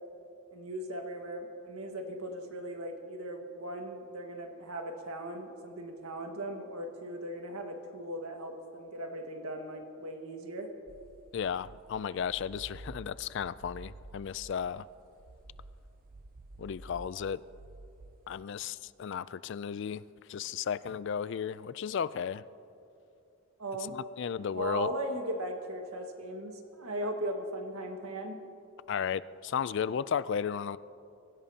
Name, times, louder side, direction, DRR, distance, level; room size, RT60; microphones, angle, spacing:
voice 1, 0.5-10.7 23.6-24.0 24.5-28.4, right 1 dB, 85° right, 3 dB, 1.7 m, -38 dB
sound 1, 10.9-18.2, right 2 dB, 40° right, 0.6 m, -51 dB
voice 2, 11.3-14.9 16.6-17.4 18.3-20.0 20.3-22.4 23.9-24.9 28.9-30.8, left 7 dB, 55° left, 17 dB, 0.3 m, -34 dB
23.5 x 16.0 x 2.8 m, 2.7 s
head